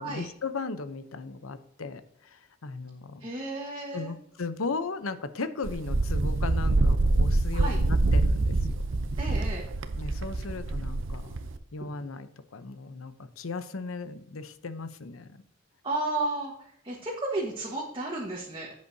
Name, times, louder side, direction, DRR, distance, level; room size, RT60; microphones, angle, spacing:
voice 1, 0.0-3.3 3.9-8.8 10.0-11.4 11.7-15.4, left 4 dB, 80° left, 11 dB, 0.7 m, -37 dB
voice 2, 3.2-4.1 7.5-7.8 9.2-9.7 15.8-18.7, right 2 dB, 25° right, -2 dB, 1.4 m, -33 dB
Wind, 5.6-11.6, right 2 dB, 65° right, 0.7 m, -25 dB
11.0 x 8.3 x 2.7 m, 0.72 s
head